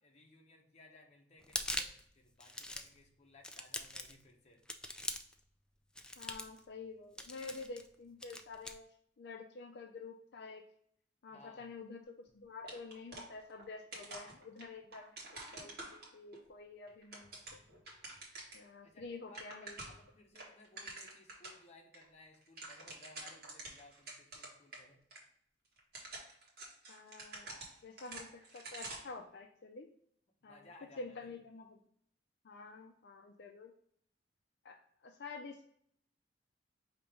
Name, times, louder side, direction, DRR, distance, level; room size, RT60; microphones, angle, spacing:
voice 1, 0.0-4.6 11.3-11.7 18.8-25.0 30.4-31.4, left 2 dB, 40° left, 1 dB, 0.9 m, -61 dB
sound 1, 1.4-2.0 2.4-3.0 3.4-4.2 4.7-5.4 6.0-6.6 7.2-7.9 8.2-8.7, left 1 dB, 5° left, 0.3 m, -41 dB
voice 2, 6.2-8.8 9.2-10.6 11.2-17.8 18.5-19.8 26.9-27.5 27.8-29.9 30.4-30.7 31.0-31.8 32.4-33.7 34.6-34.8 35.0-35.6, left 4 dB, 65° left, 3 dB, 0.5 m, -49 dB
sound 2, 12.6-13.7 13.9-16.4 16.9-18.7 19.0-19.1 19.3-20.1 20.4-21.6 21.9-22.0 22.3-24.8 25.1-25.2 25.8-29.2, right 2 dB, 60° right, 1.4 m, -48 dB
5.0 x 2.9 x 3.5 m, 0.65 s
head